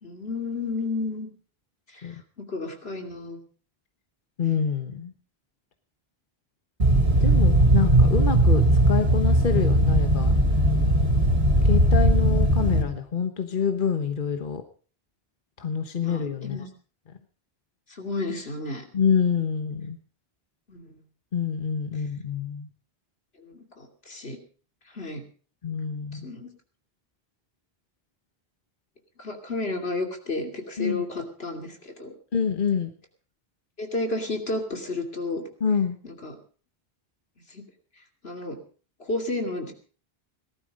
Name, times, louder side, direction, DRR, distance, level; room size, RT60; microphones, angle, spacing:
voice 1, 0.0-1.3 1.9-3.4 16.0-16.7 17.9-18.8 20.7-21.0 23.4-24.4 24.9-25.2 26.1-26.5 29.2-32.1 33.8-35.5 36.0-36.4 37.5-37.6 38.2-38.6 39.0-39.7, left 2 dB, 80° left, 4 dB, 3.0 m, -32 dB
voice 2, 4.4-5.1 7.2-10.3 11.6-14.6 15.6-16.6 18.9-20.0 21.3-22.7 25.6-26.3 30.8-31.1 32.3-32.9 35.6-36.0, left 6 dB, 55° left, 6 dB, 1.3 m, -27 dB
sound 1, 6.8-12.8, right 1 dB, 75° right, 3.1 m, -19 dB
18.5 x 12.5 x 5.2 m, 0.40 s
omnidirectional pair, 1.0 m